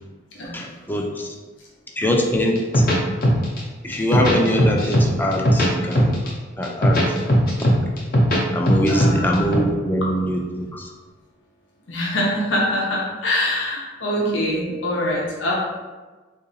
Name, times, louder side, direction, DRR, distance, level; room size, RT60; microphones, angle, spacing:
voice 1, 0.5-1.3 2.0-2.9 3.8-6.1 6.6-7.0 7.6-7.7 8.5-10.9, equal, 10° left, 0 dB, 0.4 m, -23 dB
sound 1, 2.6-3.6 3.9-5.1 5.3-6.3 6.6-8.4 8.7-9.6, equal, 50° left, 0.7 m, -17 dB
voice 2, 8.9-9.7 11.9-15.5, left 1 dB, 90° left, -4 dB, 0.7 m, -24 dB
3.8 x 2.6 x 2.7 m, 1.3 s
head